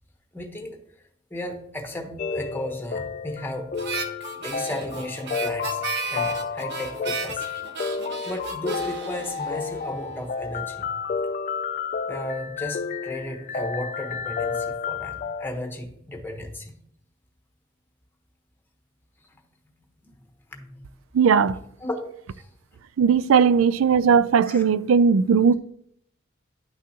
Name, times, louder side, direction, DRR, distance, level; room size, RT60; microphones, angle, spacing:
voice 1, 0.3-0.8 1.3-4.0 4.4-5.8 6.1-7.5 8.2-10.9 12.1-16.8 19.3-19.4 20.5-20.8 21.8-22.5 24.4-24.7, left 1 dB, 10° left, 1.1 m, -34 dB
sound 1, 2.2-15.5, left 5 dB, 40° left, 0.4 m, -31 dB
Harmonica, 3.8-10.2, right 6 dB, 60° right, 0.9 m, -35 dB
voice 2, 21.1-21.6 23.0-25.5, right 6 dB, 85° right, 0.4 m, -18 dB
10.5 x 6.0 x 2.8 m
head